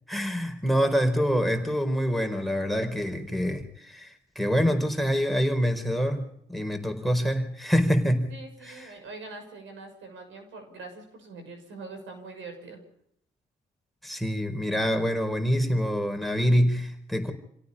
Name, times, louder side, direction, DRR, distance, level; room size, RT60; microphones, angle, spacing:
voice 1, 0.1-8.3 8.6-8.9 14.0-17.3, equal, ahead, 7 dB, 4.7 m, -26 dB
voice 2, 8.3-12.8, right 3 dB, 75° right, 6 dB, 6.5 m, -43 dB
28.0 x 17.0 x 5.6 m, 0.70 s
supercardioid pair, 50°, 20 cm